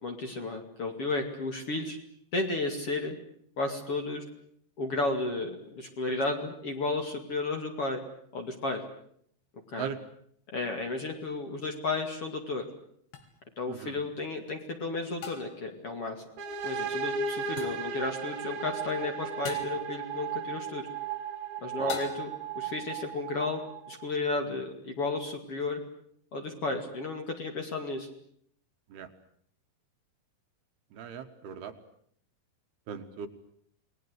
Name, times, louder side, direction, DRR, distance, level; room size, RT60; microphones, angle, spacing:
voice 1, 0.0-2.0 2.3-3.2 3.6-4.2 4.8-8.0 8.3-8.8 9.7-9.9 10.5-12.6 13.6-16.2 16.6-20.9 21.6-23.6 23.9-25.8 26.3-28.1, left 2 dB, 40° left, 4 dB, 2.7 m, -33 dB
sound 1, 13.1-13.3 15.2-15.7 17.6-17.9 19.5-19.8 21.9-22.5, left 6 dB, 70° left, 4.9 m, -40 dB
sound 2, 16.4-24.0, right 5 dB, 90° right, 4.2 m, -35 dB
voice 2, 30.9-31.7 32.9-33.3, right 7 dB, 70° right, 7 dB, 3.3 m, -38 dB
28.5 x 20.5 x 8.1 m, 0.66 s
omnidirectional pair, 5.0 m